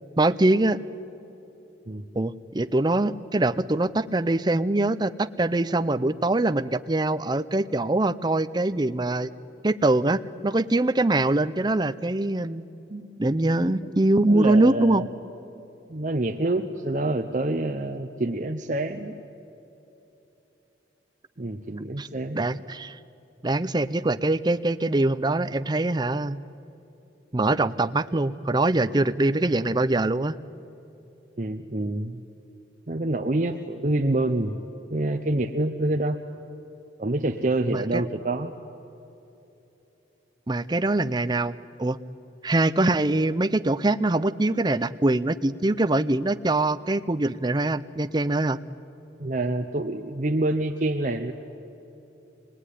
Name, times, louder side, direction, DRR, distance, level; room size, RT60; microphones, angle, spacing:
voice 1, 0.2-0.8 2.2-9.3 9.6-12.6 13.2-15.0 22.0-22.1 22.3-23.0 23.4-26.4 27.3-30.4 37.7-38.0 40.5-41.5 41.8-42.0 42.4-48.6, right 2 dB, 25° right, 11 dB, 0.6 m, -23 dB
voice 2, 12.9-13.3 13.8-14.0 14.2-15.0 15.9-19.2 21.4-22.4 31.4-32.2 32.9-34.6 34.9-36.2 37.0-38.5 49.2-51.3, right 2 dB, 45° right, 5 dB, 0.8 m, -27 dB
25.0 x 20.5 x 9.9 m, 3.0 s
head